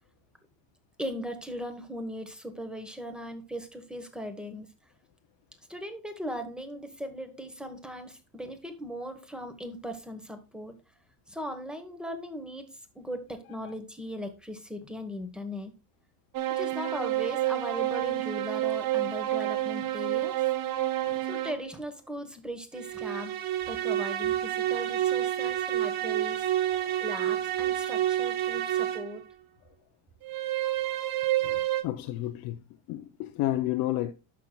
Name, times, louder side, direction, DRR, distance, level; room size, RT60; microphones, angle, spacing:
voice 1, 1.0-4.7 5.7-10.7 11.3-15.7 16.5-20.3 21.2-23.3 23.7-26.5 27.0-29.2, equal, ahead, 1.1 m, -38 dB
sound 1, 16.3-21.7 22.7-29.2 30.2-31.8, right 13 dB, 50° right, 0.9 m, -29 dB
voice 2, 26.7-27.0 31.4-32.6 32.9-34.1, left 14 dB, 55° left, 0.6 m, -32 dB
11.5 x 6.0 x 2.3 m
cardioid pair, 145°, 43 cm